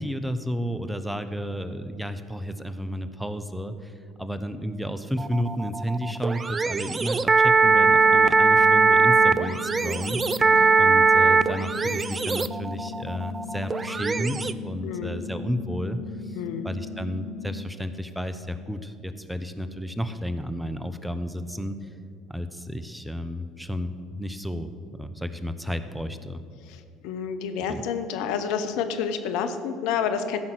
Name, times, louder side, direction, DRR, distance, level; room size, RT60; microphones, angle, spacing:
voice 1, 0.0-10.2 10.8-16.4 16.6-21.9 22.3-24.7 25.0-26.4 27.7-27.8, equal, 5° right, 10 dB, 0.9 m, -32 dB
sound 1, 5.2-14.5, right 4 dB, 25° right, 0.5 m, -21 dB
sound 2, 7.6-17.7, left 4 dB, 40° left, 0.7 m, -38 dB
voice 2, 14.8-15.2 16.3-16.7 26.7-30.4, left 7 dB, 65° left, 8 dB, 0.9 m, -29 dB
15.0 x 5.7 x 7.9 m, 2.4 s
hypercardioid pair, 65°, 0 cm